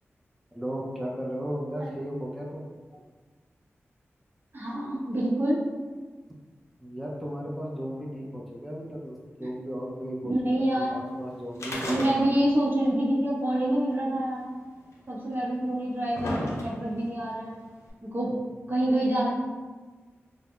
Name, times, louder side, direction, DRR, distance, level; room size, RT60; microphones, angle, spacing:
voice 1, 0.5-2.7 6.8-10.3 10.6-12.0 18.3-18.4 18.8-19.0, equal, ahead, -3 dB, 0.4 m, -35 dB
voice 2, 4.5-5.6 10.3-11.0 11.8-14.5 15.1-17.6 18.0-18.3 18.7-19.3, right 1 dB, 45° right, -4 dB, 0.7 m, -26 dB
sound 1, 11.5-12.6 12.9-13.0 13.9-14.0 14.9-15.0 15.7-17.0 17.9-18.0, left 1 dB, 75° left, 0.5 m, -33 dB
2.1 x 2.0 x 3.6 m, 1.4 s
cardioid pair, 50°, 5 cm